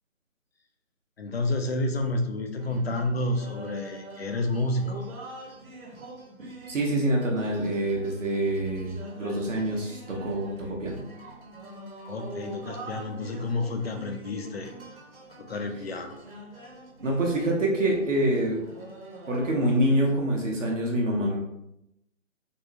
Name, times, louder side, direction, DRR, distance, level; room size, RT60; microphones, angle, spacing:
voice 1, 1.2-5.1 12.0-14.7 15.3-16.2, left 2 dB, 50° left, 5 dB, 0.4 m, -30 dB
sound 1, 2.6-20.1, right 1 dB, 80° right, 1.2 m, -44 dB
voice 2, 6.7-11.0 17.0-18.6 19.3-21.4, right 1 dB, 65° right, -2 dB, 0.9 m, -26 dB
3.5 x 2.1 x 2.7 m, 0.85 s
figure-of-eight pair, 155°, 41 cm